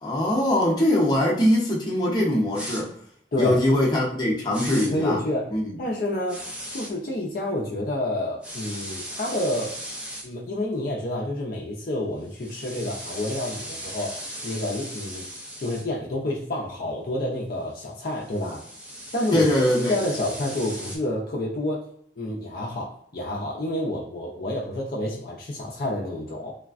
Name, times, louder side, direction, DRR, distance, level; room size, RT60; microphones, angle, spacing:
voice 1, 0.0-2.9 3.4-5.2 5.5-5.7 19.3-20.0, left 1 dB, 25° left, -5 dB, 0.7 m, -22 dB
sound 1, 2.5-2.8 4.5-4.9 6.3-6.9 8.4-10.2 12.3-15.8 18.0-21.0, equal, 5° right, 0.4 m, -37 dB
voice 2, 4.7-5.5 5.8-9.8 10.2-15.3 15.6-18.6 19.1-19.5 19.9-21.8 22.2-26.6, left 1 dB, 50° left, -4 dB, 0.5 m, -29 dB
3.3 x 2.1 x 2.4 m, 0.67 s
head